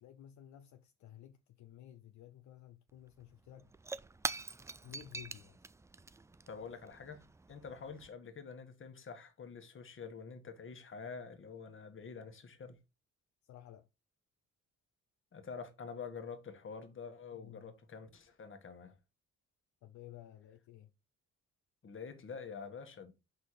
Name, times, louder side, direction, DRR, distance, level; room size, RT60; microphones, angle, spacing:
voice 1, 0.0-3.7 4.8-5.6 13.5-13.9 17.3-17.7 19.8-20.9, left 12 dB, 70° left, 0.6 m, -54 dB
Shatter / Crushing, 2.9-3.0 3.2-8.1, right 3 dB, 10° right, 0.3 m, -45 dB
voice 2, 6.5-12.8 15.3-19.0 21.8-23.1, left 5 dB, 40° left, 1.5 m, -47 dB
5.6 x 4.2 x 4.8 m
cardioid pair, 90°, 30 cm